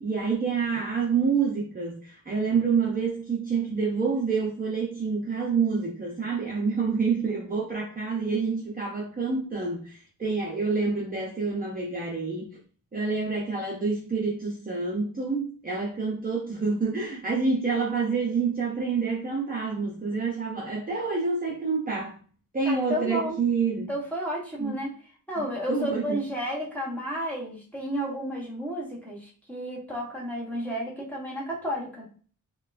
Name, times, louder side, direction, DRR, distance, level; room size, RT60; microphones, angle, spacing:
voice 1, 0.0-12.6 12.9-22.2 22.5-23.9 24.6-24.8 25.4-26.2, right 5 dB, 25° right, -3 dB, 0.6 m, -27 dB
voice 2, 22.6-23.4 23.9-25.0 25.3-32.1, equal, 5° left, -4 dB, 1.0 m, -32 dB
4.3 x 2.3 x 2.5 m, 0.41 s
wide cardioid pair, 170°, 34 cm